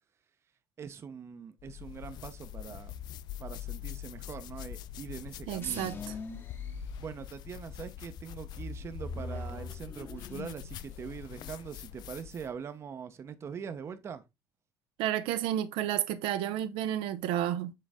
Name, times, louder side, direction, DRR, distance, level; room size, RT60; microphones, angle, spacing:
voice 1, 0.8-2.9 3.4-5.9 7.0-14.2, right 7 dB, 30° right, 0.7 m, -43 dB
sound 1, 1.6-12.6, left 12 dB, 50° left, 0.4 m, -44 dB
voice 2, 5.5-6.0 15.0-17.7, right 11 dB, 75° right, 0.6 m, -31 dB
sound 2, 5.6-7.6 8.1-10.7 11.0-11.6, left 3 dB, 25° left, 0.9 m, -42 dB
7.5 x 3.9 x 3.5 m
cardioid pair, 140°, 9 cm